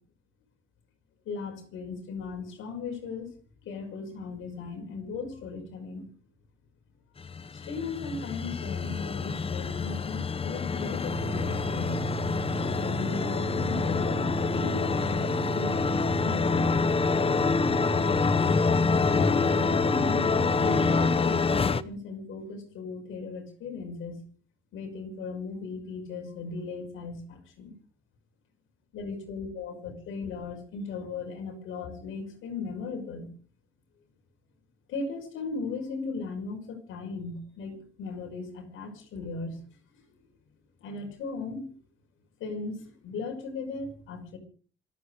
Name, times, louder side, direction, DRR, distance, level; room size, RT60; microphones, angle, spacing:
voice 1, 1.2-3.3 3.6-6.1 7.5-12.5 12.8-14.2 14.5-17.1 19.1-24.2 24.7-27.7 28.9-33.3 34.9-39.6 40.1-40.2 40.8-41.7 42.4-44.4, left 4 dB, 85° left, 5 dB, 6.1 m, -37 dB
sound 1, 7.2-21.8, left 4 dB, 30° left, 0.8 m, -26 dB
Organ, 11.0-21.3, right 9 dB, 55° right, 1.2 m, -37 dB
27.0 x 9.5 x 5.0 m, 0.41 s
cardioid pair, 90°, 20 cm